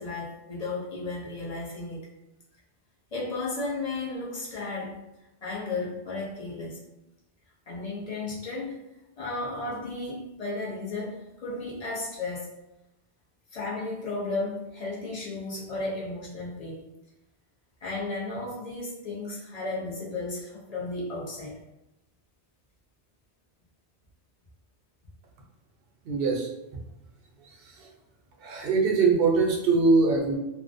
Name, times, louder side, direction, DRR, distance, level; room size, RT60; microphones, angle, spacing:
voice 1, 0.0-2.1 3.1-5.0 5.4-6.8 7.7-8.8 9.2-12.5 13.5-16.8 17.8-21.6, left 2 dB, 45° left, -6 dB, 0.5 m, -34 dB
voice 2, 26.0-26.5 27.8-27.9 28.4-30.4, right 4 dB, 65° right, 0 dB, 0.7 m, -22 dB
2.4 x 2.1 x 2.5 m, 0.94 s
omnidirectional pair, 1.2 m